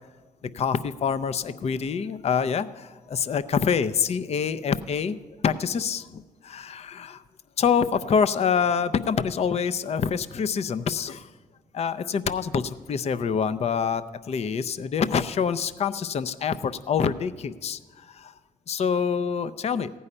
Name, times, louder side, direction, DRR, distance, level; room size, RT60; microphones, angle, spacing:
voice 1, 0.5-5.2 5.4-7.2 7.6-11.3 11.7-18.3 18.7-19.9, left 6 dB, 45° left, 12 dB, 0.5 m, -26 dB
15.5 x 5.5 x 9.7 m, 1.4 s
cardioid pair, 95°, 15 cm